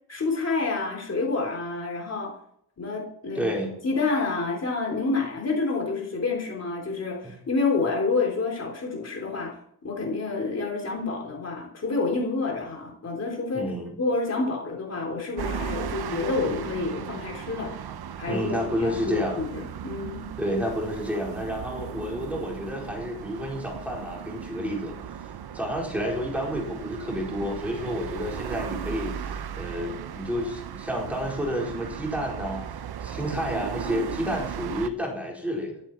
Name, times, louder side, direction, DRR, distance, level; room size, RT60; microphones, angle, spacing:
voice 1, 0.1-2.3 2.8-9.5 9.8-13.6 14.0-17.7 18.2-18.5 18.8-20.3, left 3 dB, 40° left, 0 dB, 3.3 m, -28 dB
voice 2, 3.3-3.7 7.2-7.3 13.5-13.9 18.3-19.4 20.4-24.9 25.5-32.6 33.0-35.8, equal, 5° right, -2 dB, 4.5 m, -30 dB
sound 1, 15.4-34.9, right 8 dB, 70° right, 1.0 m, -36 dB
14.0 x 13.0 x 4.5 m, 0.69 s
wide cardioid pair, 160°, 40 cm